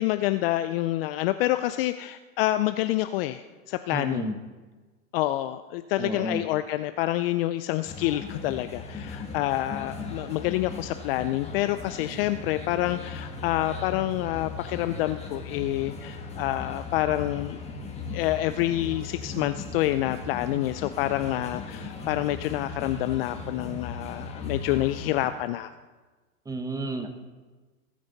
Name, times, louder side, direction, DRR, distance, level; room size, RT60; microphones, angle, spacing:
voice 1, 0.0-4.3 5.1-17.6 18.1-25.7, left 15 dB, 45° left, 11 dB, 0.4 m, -27 dB
voice 2, 3.9-4.4 6.0-6.4 26.4-27.1, right 2 dB, 10° right, 7 dB, 1.0 m, -31 dB
sound 1, 7.8-25.3, left 3 dB, 15° left, 1.9 m, -38 dB
19.5 x 9.5 x 4.0 m, 1.3 s
hypercardioid pair, 125°, 44 cm